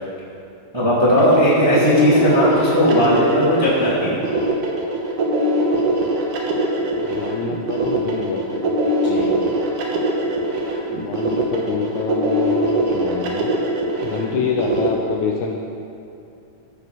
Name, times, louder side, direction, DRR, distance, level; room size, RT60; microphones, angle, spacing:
voice 1, 0.7-4.2 9.0-9.3, equal, 15° right, -8 dB, 1.1 m, -17 dB
sound 1, 1.2-14.9, right 1 dB, 70° right, 2.6 m, -22 dB
voice 2, 7.0-8.8 10.9-13.5 14.0-15.6, left 6 dB, 85° left, 1 dB, 1.7 m, -26 dB
14.5 x 5.1 x 6.1 m, 2.7 s
omnidirectional pair, 3.9 m